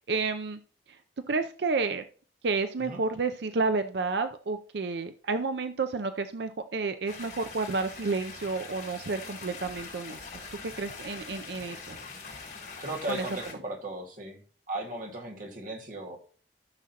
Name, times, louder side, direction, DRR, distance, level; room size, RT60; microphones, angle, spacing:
voice 1, 0.1-0.6 1.3-2.0 2.4-10.4 10.8-12.0 13.1-13.2, right 4 dB, 65° right, 9 dB, 0.5 m, -30 dB
sound 1, 7.1-13.5, left 4 dB, 55° left, 3.7 m, -43 dB
voice 2, 12.8-14.4 14.7-16.2, right 2 dB, 45° right, 1 dB, 1.7 m, -36 dB
13.5 x 6.3 x 2.9 m, 0.42 s
head